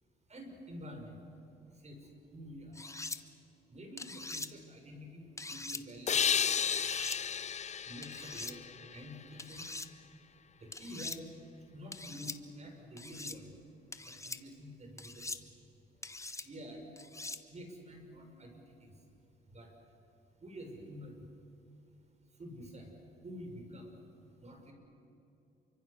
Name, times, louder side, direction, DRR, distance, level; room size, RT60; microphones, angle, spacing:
voice 1, 0.3-1.2 1.8-2.0 2.3-2.8 3.7-6.2 7.9-8.7 8.9-9.6 10.6-11.3 11.7-13.5 14.0-15.2 16.4-16.9 17.5-18.9 19.5-19.7 20.4-21.1 22.4-22.9 23.2-23.9 24.4-24.7, equal, 35° right, 3 dB, 6.3 m, -48 dB
sound 1, 2.7-3.2 4.0-4.5 5.4-5.8 6.7-7.2 8.0-8.5 9.4-9.9 10.7-11.2 11.9-12.4 13.0-13.4 13.9-14.4 15.0-15.4 16.0-16.5 17.0-17.4, left 2 dB, 15° left, 1.2 m, -42 dB
sound 2, 6.1-9.6, left 7 dB, 35° left, 0.5 m, -33 dB
28.5 x 24.5 x 6.8 m, 2.9 s
cardioid pair, 90°, 20 cm